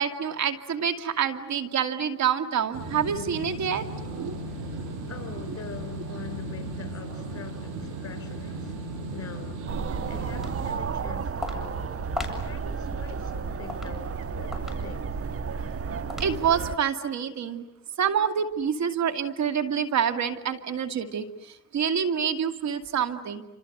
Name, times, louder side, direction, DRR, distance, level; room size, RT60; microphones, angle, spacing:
voice 1, 0.0-4.4 15.5-15.6 16.2-17.6 18.0-23.5, right 7 dB, 65° right, 2.3 m, -27 dB
sound 1, 2.7-10.8, right 2 dB, 85° right, 6.8 m, -36 dB
voice 2, 5.1-8.8 9.1-9.7 10.1-11.9 12.3-15.1, left 8 dB, 50° left, 4.9 m, -44 dB
sound 2, 9.7-16.8, right 6 dB, 50° right, 1.3 m, -33 dB
Walk footsteps, 10.2-16.7, left 2 dB, ahead, 7.3 m, -40 dB
28.0 x 27.0 x 7.9 m
cardioid pair, 90°, 30 cm